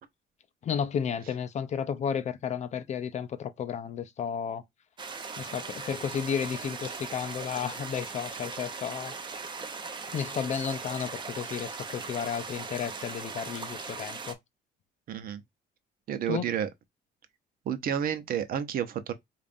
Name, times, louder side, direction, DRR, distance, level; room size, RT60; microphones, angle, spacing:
voice 1, 0.6-4.6 5.4-9.1 10.1-14.4 16.3-16.5, left 7 dB, 45° left, 0.5 m, -33 dB
sound 1, 5.0-14.3, right 4 dB, 30° right, 0.7 m, -39 dB
voice 2, 15.1-15.4 16.1-16.7 17.7-19.1, right 9 dB, 60° right, 0.7 m, -30 dB
5.0 x 2.5 x 2.5 m
cardioid pair, 110°, 17 cm